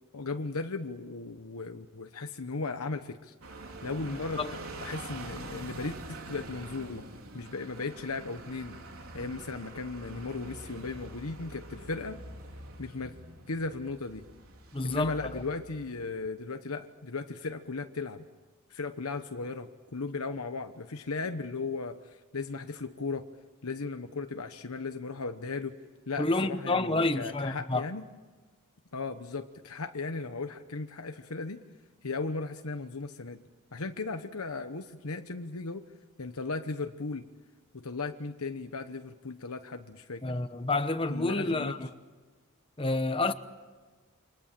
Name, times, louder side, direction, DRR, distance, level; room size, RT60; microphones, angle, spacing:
voice 1, 0.1-3.3 3.8-7.1 7.3-8.8 9.1-12.2 12.8-13.2 13.5-14.3 14.8-18.2 18.7-23.3 23.6-25.8 26.1-28.1 28.9-31.6 32.0-33.4 33.7-35.8 36.2-37.3 37.7-40.4 41.1-41.8, left 3 dB, 85° left, 1.1 m, -36 dB
sound 1, 3.4-16.0, right 2 dB, 75° right, 4.1 m, -45 dB
voice 2, 14.7-15.4 26.2-27.9 40.2-41.9 42.8-43.3, left 2 dB, 25° left, 1.0 m, -29 dB
29.0 x 25.5 x 7.6 m
head